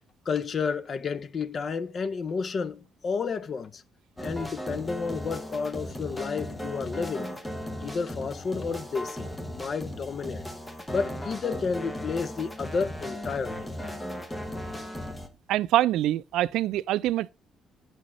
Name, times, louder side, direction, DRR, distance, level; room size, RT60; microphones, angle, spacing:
voice 1, 0.3-3.8 4.2-7.3 7.8-10.4 10.9-13.7, left 5 dB, 35° left, 0.5 m, -31 dB
sound 1, 4.2-15.3, equal, 10° left, 0.9 m, -37 dB
voice 2, 15.5-17.3, right 14 dB, 80° right, 0.3 m, -25 dB
8.7 x 6.2 x 3.0 m
cardioid pair, 165°, 0 cm